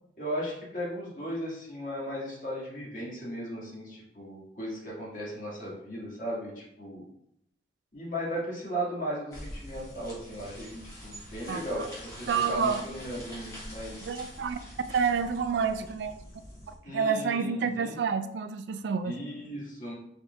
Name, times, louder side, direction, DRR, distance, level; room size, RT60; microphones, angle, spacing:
voice 1, 0.2-7.0 7.9-14.2 16.8-18.0 19.0-19.9, equal, 45° left, -5 dB, 1.7 m, -36 dB
sound 1, 9.3-16.8, equal, 20° left, 1.4 m, -45 dB
voice 2, 11.5-11.9 12.3-12.8 14.0-14.6 14.9-16.2 16.7-19.2, right 6 dB, 75° right, 10 dB, 0.3 m, -29 dB
4.8 x 4.3 x 2.2 m, 0.78 s
head